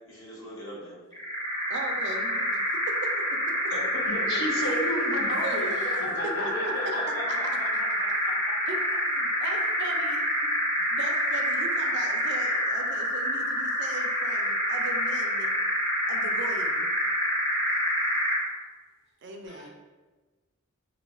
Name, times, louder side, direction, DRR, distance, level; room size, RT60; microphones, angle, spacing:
voice 1, 0.1-1.0 3.7-4.4 6.0-8.1, left 1 dB, 70° left, -5 dB, 1.1 m, -37 dB
sound 1, 1.1-18.5, equal, 15° left, 0.6 m, -27 dB
voice 2, 1.7-3.5 4.6-4.8 5.1-6.3 6.6-6.9 7.3-8.0 8.7-8.8 9.0-15.5 16.1-16.9 18.0-18.1 18.4-18.6 19.2-19.7, right 3 dB, 55° right, 3 dB, 0.4 m, -40 dB
voice 3, 4.1-5.7 6.0-6.5 6.9-7.0 19.5-19.7, left 1 dB, 55° left, -2 dB, 0.7 m, -32 dB
2.7 x 2.3 x 4.0 m, 1.3 s
head